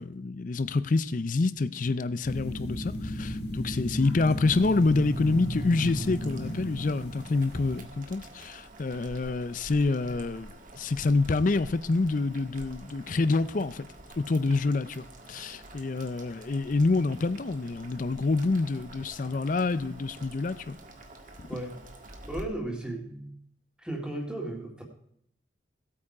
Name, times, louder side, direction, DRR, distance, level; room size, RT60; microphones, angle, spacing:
voice 1, 0.0-13.8 14.2-20.8 21.4-21.5, left 3 dB, 45° left, 0.5 m, -27 dB
sound 1, 2.2-7.8, equal, 60° left, 1.8 m, -35 dB
Boiling, 4.4-22.4, right 1 dB, 45° right, 1.7 m, -48 dB
voice 2, 21.5-21.8 22.2-23.3 23.8-24.8, right 1 dB, 5° right, 1.9 m, -35 dB
16.5 x 8.6 x 4.9 m
head